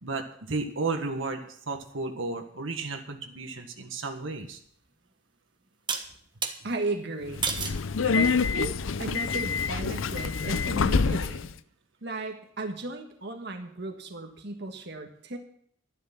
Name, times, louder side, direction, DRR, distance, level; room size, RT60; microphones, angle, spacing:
voice 1, 0.0-4.6, right 3 dB, 80° right, 4 dB, 1.7 m, -33 dB
sound 1, 5.9-6.6 7.4-7.8 8.5-8.9, right 5 dB, 25° right, 1.4 m, -31 dB
voice 2, 6.6-7.5 8.0-11.5 12.0-15.4, right 2 dB, 60° right, 4 dB, 1.7 m, -35 dB
Subway metro underground, 7.3-11.5, left 5 dB, 85° left, 0.6 m, -27 dB
12.5 x 11.5 x 5.9 m, 0.63 s
head